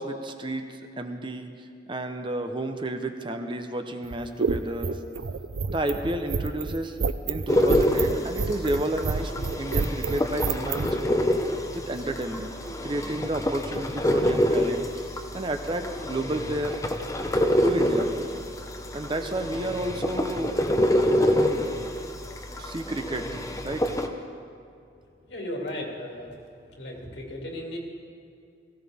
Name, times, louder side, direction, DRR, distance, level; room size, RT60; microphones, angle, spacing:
voice 1, 0.0-5.0 5.7-7.0 7.3-11.2 11.9-12.5 12.8-16.8 17.6-18.1 18.9-20.5 20.9-21.3 21.8-21.9 22.6-23.3 23.6-23.9, right 1 dB, 30° right, 6 dB, 0.8 m, -31 dB
sound 1, 4.0-10.9, right 5 dB, 85° right, 0.5 m, -29 dB
sound 2, 7.5-24.1, equal, 20° left, 0.7 m, -27 dB
voice 2, 25.3-26.3 26.7-27.8, left 1 dB, 85° left, -1 dB, 2.7 m, -35 dB
18.0 x 15.5 x 3.6 m, 2.5 s
head